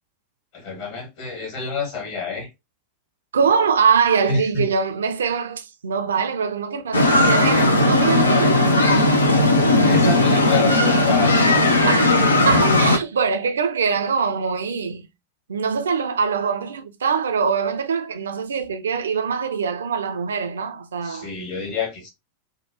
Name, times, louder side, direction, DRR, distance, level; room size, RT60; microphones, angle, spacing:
voice 1, 0.5-2.5 4.2-4.7 8.8-9.1 9.8-11.9 21.0-22.1, left 5 dB, 50° left, 1.5 m, -28 dB
voice 2, 3.3-8.8 11.9-15.1 15.5-21.3, right 6 dB, 65° right, 0.5 m, -23 dB
sound 1, 6.9-13.0, left 2 dB, 75° left, 0.5 m, -17 dB
3.7 x 2.2 x 2.8 m
figure-of-eight pair, 90°, 0 cm